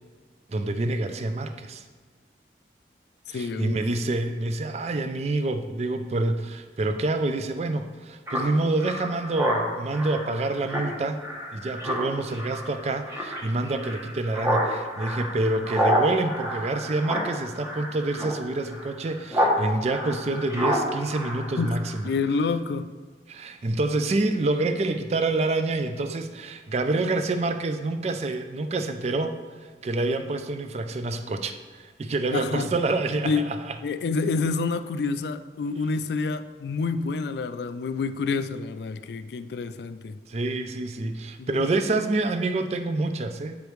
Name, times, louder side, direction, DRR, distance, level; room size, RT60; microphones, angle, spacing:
voice 1, 0.5-1.8 3.3-11.2 11.5-22.1 23.3-33.8 40.3-43.6, right 2 dB, 40° right, 8 dB, 0.4 m, -27 dB
voice 2, 3.3-3.8 21.6-21.8 22.0-22.9 32.3-32.7 33.2-33.5 33.8-40.2 41.4-41.7, left 4 dB, 70° left, 11 dB, 0.3 m, -28 dB
Speech synthesizer, 8.3-19.6 19.9-22.1, equal, 15° right, 0.9 m, -29 dB
8.1 x 5.0 x 3.1 m, 1.5 s
head